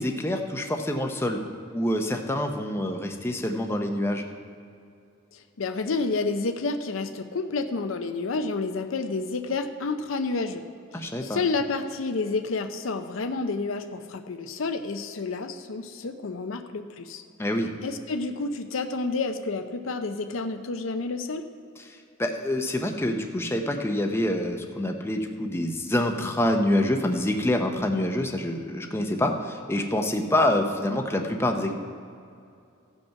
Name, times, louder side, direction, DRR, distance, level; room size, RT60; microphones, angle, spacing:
voice 1, 0.0-1.4 1.7-4.3 10.9-11.4 17.4-17.7 22.2-31.7, left 1 dB, 10° left, 3 dB, 0.7 m, -26 dB
voice 2, 5.3-10.6 10.9-17.2 17.8-21.4, left 3 dB, 70° left, 8 dB, 0.6 m, -30 dB
15.5 x 5.4 x 5.8 m, 2.5 s
head